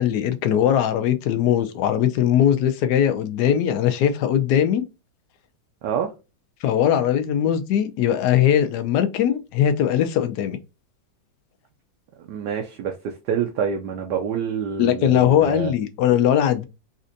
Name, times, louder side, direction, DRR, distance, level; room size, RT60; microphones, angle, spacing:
voice 1, 0.0-4.8 6.6-10.6 14.8-16.6, left 10 dB, 70° left, 1.0 m, -20 dB
voice 2, 5.8-6.1 12.3-15.7, right 7 dB, 70° right, 1.1 m, -27 dB
4.2 x 2.5 x 2.5 m
omnidirectional pair, 2.0 m